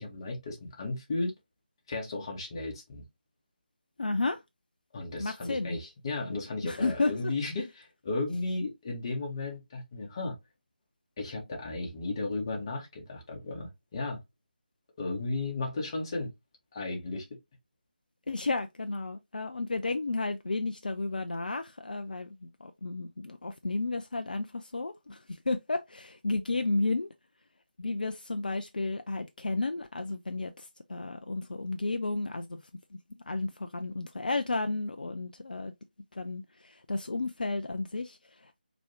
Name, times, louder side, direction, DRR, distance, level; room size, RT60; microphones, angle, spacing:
voice 1, 0.0-1.3 1.9-3.1 4.9-10.4 11.2-14.2 15.0-16.3 16.7-17.4, left 2 dB, 30° left, 1.2 m, -34 dB
voice 2, 4.0-4.4 5.2-5.8 6.6-7.3 18.3-27.1 27.8-32.6 33.3-35.7 36.1-38.6, left 3 dB, 60° left, 0.4 m, -32 dB
4.7 x 3.0 x 2.8 m
figure-of-eight pair, 155°, 5 cm